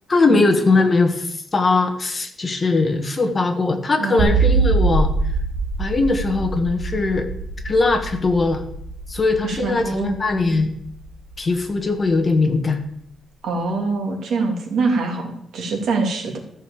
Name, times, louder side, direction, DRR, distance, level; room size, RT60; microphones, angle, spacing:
voice 1, 0.1-5.1 5.8-7.3 7.6-8.6 9.1-10.7 11.4-12.8, left 3 dB, 25° left, 5 dB, 1.4 m, -20 dB
voice 2, 4.0-4.4 9.4-10.2 13.4-16.4, right 3 dB, 65° right, 3 dB, 2.6 m, -24 dB
sound 1, 4.2-11.4, right 4 dB, 10° right, 2.4 m, -24 dB
14.0 x 6.5 x 7.1 m, 0.73 s
wide cardioid pair, 165°, 0 cm